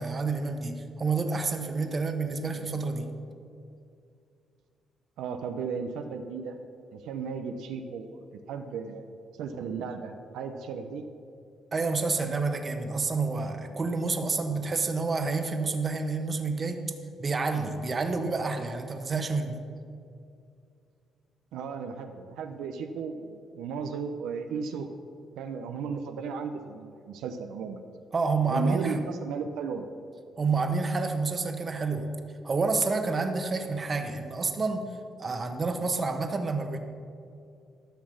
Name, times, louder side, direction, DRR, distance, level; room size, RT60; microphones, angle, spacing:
voice 1, 0.0-3.1 11.7-16.8 17.2-19.6 28.1-29.0 30.4-32.1 32.4-34.8 35.2-36.8, right 4 dB, 35° right, 5 dB, 1.1 m, -29 dB
voice 2, 5.2-6.6 6.9-9.1 9.4-11.0 21.5-24.9 25.4-27.8 28.5-29.9, right 5 dB, 90° right, 6 dB, 0.6 m, -35 dB
12.5 x 6.3 x 6.4 m, 2.4 s
cardioid pair, 90°, 0 cm